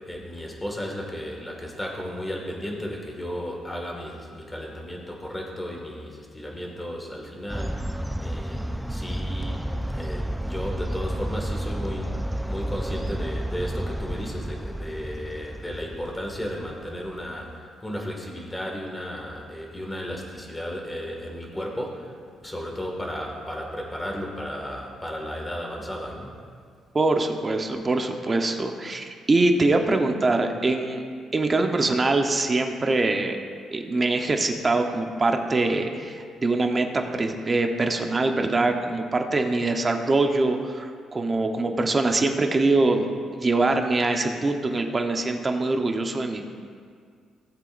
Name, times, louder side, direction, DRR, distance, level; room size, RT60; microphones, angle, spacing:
voice 1, 0.1-7.9 8.2-8.6 8.9-9.6 9.9-12.1 12.5-22.1 22.4-26.3, equal, 15° left, 0 dB, 2.0 m, -34 dB
sound 1, 7.5-17.3, right 1 dB, 5° right, 0.3 m, -31 dB
voice 2, 26.9-31.0 31.3-33.4 33.7-46.4, right 2 dB, 30° right, 4 dB, 1.0 m, -23 dB
17.5 x 7.7 x 2.6 m, 2.1 s
cardioid pair, 90°, 0 cm